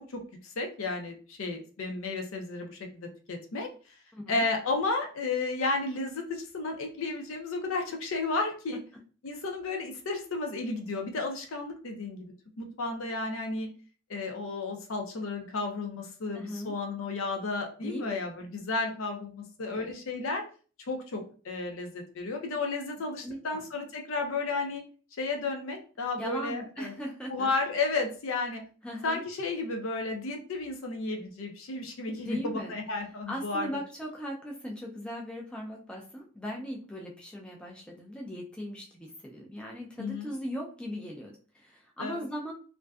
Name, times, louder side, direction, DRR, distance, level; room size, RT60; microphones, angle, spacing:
voice 1, 0.1-3.7 4.3-8.8 9.2-13.7 14.1-20.4 20.9-24.8 25.2-26.9 27.3-28.6 29.0-33.7 40.0-40.3 42.0-42.2, left 3 dB, 75° left, 3 dB, 0.5 m, -33 dB
voice 2, 4.1-4.4 8.7-8.8 16.3-16.7 17.8-18.2 19.7-19.9 23.2-23.7 26.2-27.5 28.8-29.2 32.2-32.8 33.3-42.5, equal, 5° left, -1 dB, 0.3 m, -38 dB
2.5 x 2.2 x 2.3 m, 0.39 s
head